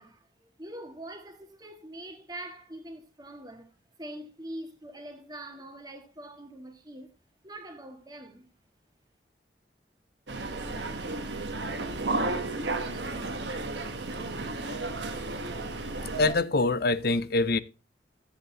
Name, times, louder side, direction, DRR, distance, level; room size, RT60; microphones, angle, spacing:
voice 1, 0.0-3.7 4.0-7.2 7.4-8.5, right 1 dB, 20° right, 1.8 m, -43 dB
sound 1, 10.3-16.3, right 2 dB, 85° right, 1.3 m, -33 dB
voice 2, 16.2-17.6, left 3 dB, 60° left, 0.6 m, -24 dB
13.5 x 7.9 x 2.9 m
head